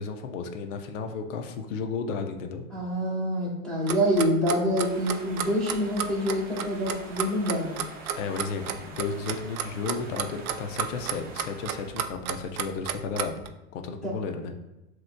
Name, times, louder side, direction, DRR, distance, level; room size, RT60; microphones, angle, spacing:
voice 1, 0.0-2.6 8.1-13.4 13.7-14.5, left 5 dB, 65° left, 6 dB, 0.7 m, -33 dB
voice 2, 2.7-7.8 14.0-14.1, equal, ahead, -7 dB, 1.3 m, -26 dB
Clock, 3.9-13.5, right 9 dB, 90° right, 0.5 m, -32 dB
sound 1, 4.8-11.9, right 3 dB, 20° right, 0.8 m, -45 dB
7.3 x 3.1 x 2.2 m, 0.97 s
hypercardioid pair, 130°, 41 cm